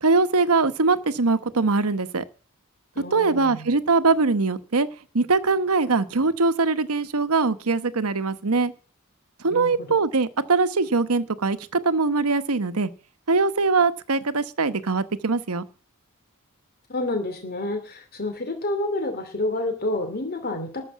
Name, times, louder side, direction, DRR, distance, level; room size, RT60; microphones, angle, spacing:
voice 1, 0.0-2.2 3.1-4.9 5.1-8.7 9.4-12.9 13.3-15.7, right 3 dB, 85° right, 13 dB, 1.0 m, -22 dB
voice 2, 3.0-3.7 9.5-9.9 16.9-20.8, left 2 dB, 45° left, 6 dB, 2.6 m, -29 dB
13.0 x 6.7 x 7.2 m, 0.40 s
head